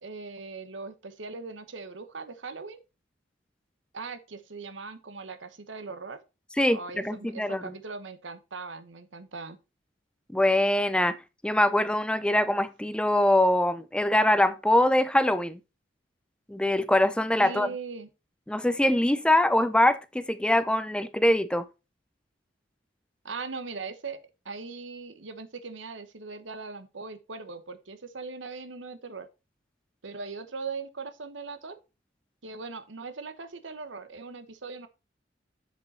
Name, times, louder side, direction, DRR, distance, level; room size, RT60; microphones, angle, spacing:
voice 1, 0.0-2.8 3.9-6.2 6.7-9.6 17.4-18.1 23.2-24.2 24.4-29.3 30.0-31.8 32.4-34.9, right 4 dB, 80° right, 1.1 m, -40 dB
voice 2, 6.6-7.6 10.3-11.2 11.4-15.6 16.5-17.7 18.5-21.7, left 1 dB, 5° left, 0.5 m, -23 dB
7.5 x 6.8 x 4.2 m
head